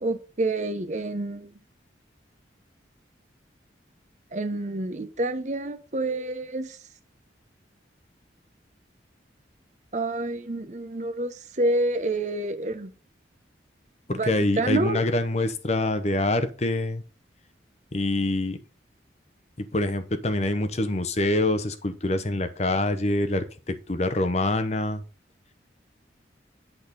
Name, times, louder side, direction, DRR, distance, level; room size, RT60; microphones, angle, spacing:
voice 1, 0.0-1.5 4.3-6.8 9.9-12.9 14.1-14.3 14.6-15.0, right 2 dB, 40° right, 10 dB, 0.8 m, -28 dB
voice 2, 14.1-17.0 17.9-18.6 19.6-25.0, left 1 dB, 35° left, 10 dB, 0.7 m, -25 dB
8.3 x 4.0 x 5.2 m, 0.35 s
head